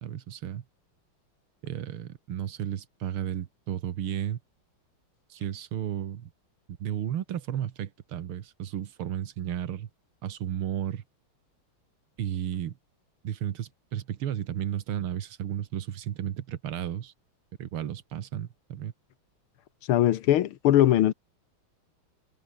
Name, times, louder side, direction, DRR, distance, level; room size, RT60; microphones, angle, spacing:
voice 1, 0.0-0.6 1.6-4.4 5.3-6.3 6.8-9.9 10.2-11.0 12.2-12.8 13.2-17.1 17.6-18.9, right 10 dB, 85° right, 2.1 m, -33 dB
voice 2, 19.9-21.1, left 12 dB, 90° left, 1.9 m, -21 dB
omnidirectional pair, 2.3 m